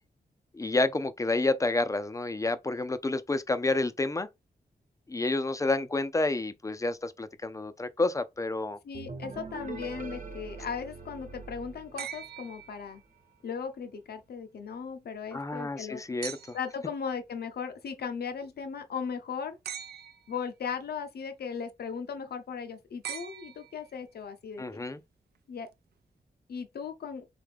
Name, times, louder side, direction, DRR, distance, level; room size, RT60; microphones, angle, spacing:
voice 1, 0.5-4.3 5.1-8.8 15.3-16.6 24.6-25.0, left 2 dB, 20° left, 0.4 m, -29 dB
voice 2, 8.8-13.0 13.4-16.2 16.5-19.6 20.3-24.8 25.5-25.7 26.5-27.3, left 6 dB, 75° left, 0.8 m, -37 dB
sound 1, 8.9-12.7, right 4 dB, 50° right, 1.0 m, -43 dB
sound 2, 12.0-13.4 16.2-16.8 19.6-20.4 23.0-24.1 25.7-25.8, right 9 dB, 80° right, 0.5 m, -42 dB
3.7 x 3.6 x 3.4 m
wide cardioid pair, 140°, 17 cm